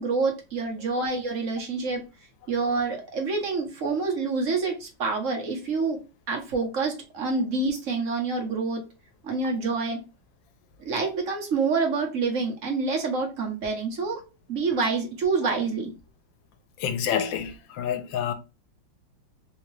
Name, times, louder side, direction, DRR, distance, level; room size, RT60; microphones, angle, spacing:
voice 1, 0.0-2.0 2.5-6.0 6.3-8.8 9.2-10.0 10.8-14.2 14.5-15.9, right 4 dB, 50° right, 1.2 m, -27 dB
voice 2, 16.8-18.3, left 8 dB, 80° left, 1.4 m, -28 dB
3.6 x 2.8 x 3.2 m
omnidirectional pair, 2.1 m